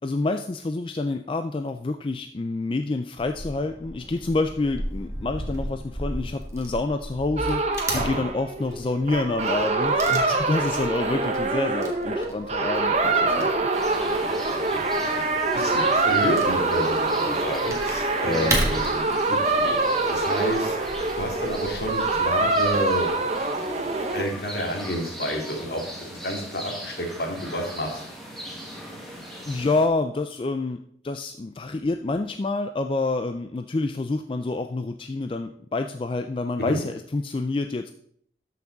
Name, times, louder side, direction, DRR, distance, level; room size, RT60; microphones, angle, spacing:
voice 1, 0.0-7.6 7.9-13.7 18.3-18.6 28.9-37.9, left 3 dB, 30° left, 7 dB, 0.3 m, -28 dB
Wood / Tearing, 3.2-22.8, right 1 dB, 15° right, 1.5 m, -35 dB
sound 1, 7.4-24.2, right 3 dB, 35° right, 0.9 m, -25 dB
voice 2, 7.9-8.2 14.0-14.1 14.5-19.2 19.4-19.7 20.1-20.8 21.2-23.1 24.1-28.0 36.7-36.8, equal, 65° left, 1 dB, 2.3 m, -30 dB
sound 2, 13.7-29.9, equal, ahead, 1.7 m, -39 dB
13.0 x 5.9 x 3.9 m, 0.67 s
head